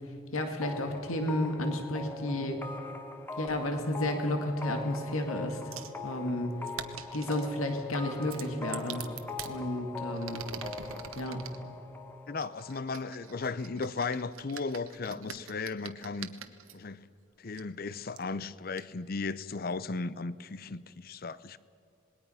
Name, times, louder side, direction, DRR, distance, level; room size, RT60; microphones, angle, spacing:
voice 1, 0.3-2.6 3.4-5.6 6.0-6.5 7.1-9.0 9.4-10.4 11.2-11.4, left 1 dB, 90° left, 2.0 m, -32 dB
sound 1, 0.6-14.1, left 3 dB, 10° left, 1.1 m, -42 dB
sound 2, 5.7-6.0 6.6-7.5 8.2-9.5 10.1-11.6 12.4-16.7 17.5-17.6 18.2-18.3 18.8-18.9, right 8 dB, 85° right, 1.2 m, -44 dB
voice 2, 12.3-16.3 16.7-17.0 17.4-21.6, left 4 dB, 45° left, 0.5 m, -36 dB
26.5 x 20.5 x 5.7 m
head